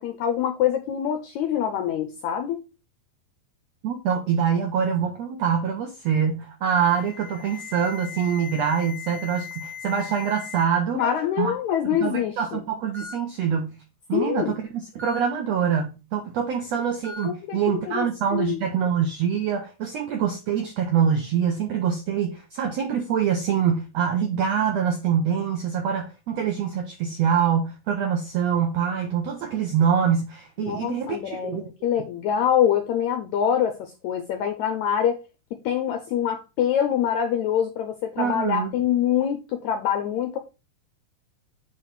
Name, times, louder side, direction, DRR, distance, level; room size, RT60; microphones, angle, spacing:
voice 1, 0.0-2.6 10.9-12.6 14.1-14.6 17.2-18.1 18.3-18.6 30.6-35.2 35.5-40.4, left 9 dB, 80° left, 1.6 m, -25 dB
voice 2, 3.8-11.0 11.4-11.5 11.8-13.8 14.1-31.6 38.2-38.7, right 7 dB, 80° right, 1.5 m, -25 dB
Alarm, 6.7-10.6 11.0-11.4 12.2-12.3 12.9-13.1 15.0-15.2 17.0-17.2, left 6 dB, ahead, 0.7 m, -39 dB
7.6 x 3.2 x 5.4 m
omnidirectional pair, 4.1 m